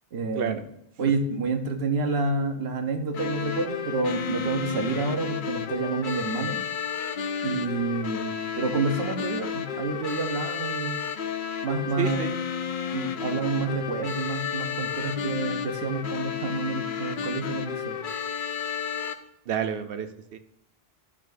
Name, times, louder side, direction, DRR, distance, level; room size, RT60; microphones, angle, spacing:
voice 1, 0.1-0.6 1.0-6.6 7.4-11.0 11.6-12.3 12.9-18.0, right 3 dB, 85° right, 5 dB, 1.2 m, -29 dB
sound 1, 3.1-19.1, left 7 dB, 60° left, 0.7 m, -32 dB
voice 2, 12.0-12.4 19.5-20.4, right 8 dB, 70° right, 9 dB, 0.8 m, -29 dB
11.5 x 6.1 x 2.5 m, 0.76 s
omnidirectional pair, 1.0 m